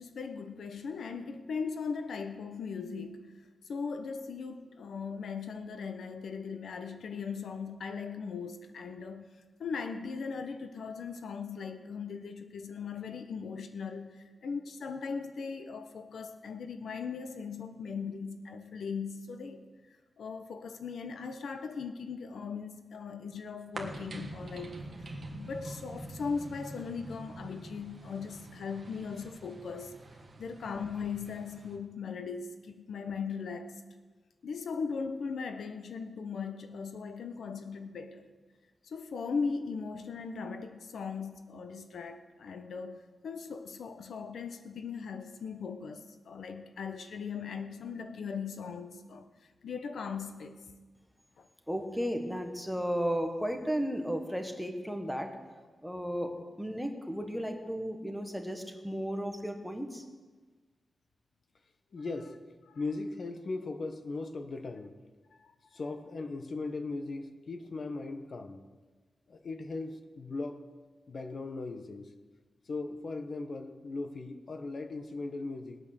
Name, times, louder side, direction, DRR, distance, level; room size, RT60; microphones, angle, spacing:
voice 1, 0.0-9.3 9.6-19.6 20.2-29.9 30.4-33.8 34.4-38.3 38.8-49.3 49.6-50.6 51.4-51.5 62.7-62.8 65.3-65.5, left 5 dB, 75° left, 8 dB, 1.0 m, -39 dB
sound 1, 23.7-31.8, right 2 dB, 35° right, 1.8 m, -45 dB
voice 2, 51.7-55.3 55.8-60.0, equal, ahead, 4 dB, 1.3 m, -34 dB
voice 3, 61.9-62.3 62.7-64.9 65.7-68.6 69.3-70.6 71.1-72.1 72.7-75.8, left 3 dB, 45° left, 7 dB, 1.2 m, -38 dB
19.5 x 8.9 x 6.5 m, 1.4 s
wide cardioid pair, 170°, 0 cm